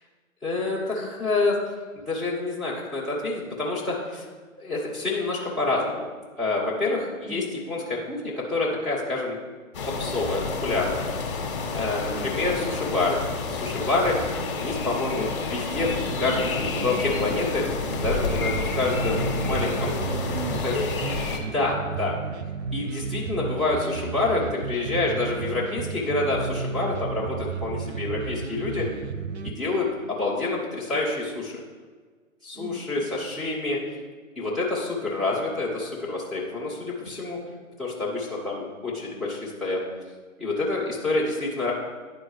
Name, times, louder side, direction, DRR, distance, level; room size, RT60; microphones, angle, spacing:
voice 1, 0.4-1.6 1.9-4.3 4.6-6.1 6.4-9.4 9.8-11.1 11.4-13.2 13.5-14.2 14.6-15.9 16.2-17.7 18.0-19.9 20.6-20.7 21.5-22.1 22.7-28.9 29.4-31.6 32.4-33.8 34.3-37.4 37.8-39.8 40.4-41.7, left 3 dB, ahead, -11 dB, 1.4 m, -27 dB
voice 2, 7.2-7.6 12.1-12.5 15.1-15.5 18.8-21.4 32.5-33.1, right 1 dB, 35° right, -3 dB, 2.0 m, -39 dB
sound 1, 9.7-21.4, left 4 dB, 40° left, 1.3 m, -30 dB
sound 2, 15.8-20.9, equal, 80° right, 1.2 m, -36 dB
sound 3, 17.9-29.5, right 5 dB, 50° right, 0.5 m, -32 dB
10.5 x 4.5 x 3.2 m, 1.5 s
figure-of-eight pair, 140°, 42 cm